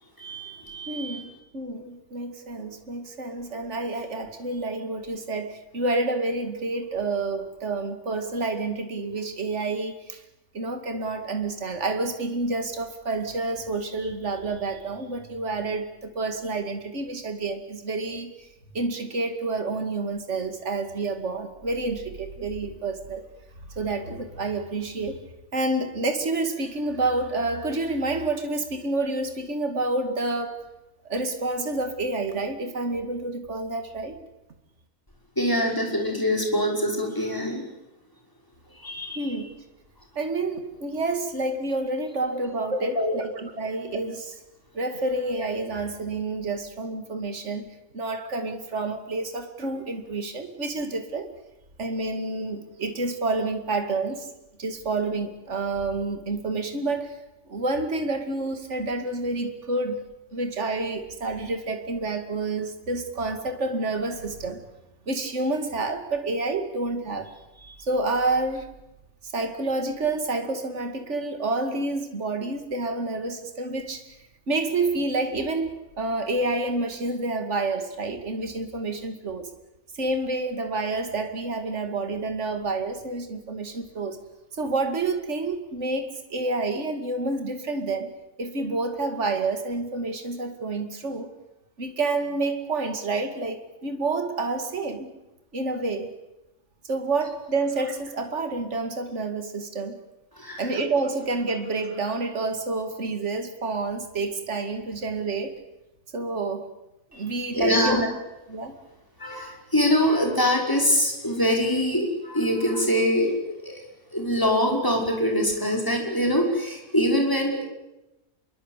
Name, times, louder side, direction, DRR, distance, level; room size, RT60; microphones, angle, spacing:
voice 1, 0.2-1.2 35.4-37.6 38.8-39.2 43.0-43.2 100.4-100.6 107.5-108.1 109.2-113.7 114.1-117.6, equal, 15° left, 1 dB, 5.9 m, -24 dB
voice 2, 0.9-10.2 10.5-18.3 18.7-23.3 23.8-25.2 25.5-30.6 31.1-34.2 39.2-39.5 40.2-44.4 44.7-47.7 47.9-51.3 51.8-54.3 54.6-57.2 57.5-64.6 65.1-68.7 69.2-74.1 74.5-79.5 79.9-84.2 84.5-88.1 88.4-91.3 91.8-95.1 95.5-96.1 96.9-100.0 100.6-105.6 106.1-106.7 107.1-108.0 108.5-108.7, right 3 dB, 50° right, 6 dB, 2.7 m, -29 dB
27.5 x 22.5 x 8.4 m, 0.96 s
omnidirectional pair, 1.5 m